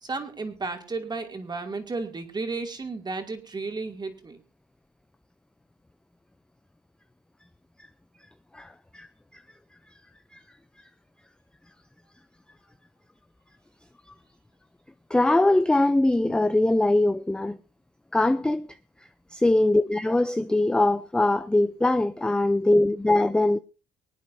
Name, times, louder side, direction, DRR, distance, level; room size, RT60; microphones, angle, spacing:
voice 1, 0.0-4.4, right 3 dB, 25° right, 2.6 m, -33 dB
voice 2, 8.5-9.1 9.3-9.4 10.3-10.4 15.1-17.6 18.1-18.7 19.3-23.6, left 2 dB, 5° left, 0.5 m, -22 dB
24.5 x 9.1 x 2.7 m
cardioid pair, 110°, 17 cm